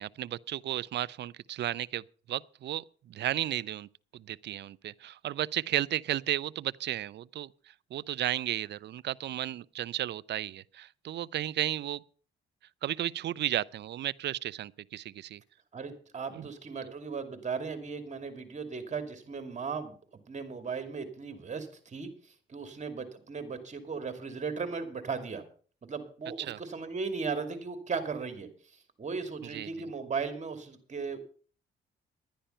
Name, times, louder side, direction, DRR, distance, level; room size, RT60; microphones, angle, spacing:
voice 1, 0.0-2.0 2.3-3.9 4.1-7.5 7.9-12.0 12.8-15.4 16.3-16.5 16.8-16.9 26.5-26.6 29.5-29.7, right 12 dB, 60° right, 0.5 m, -34 dB
voice 2, 15.7-19.9 20.3-22.1 22.5-25.4 25.8-28.5 29.0-31.2, right 5 dB, 35° right, 2.5 m, -36 dB
11.5 x 10.0 x 5.5 m
cardioid pair, 90°, 20 cm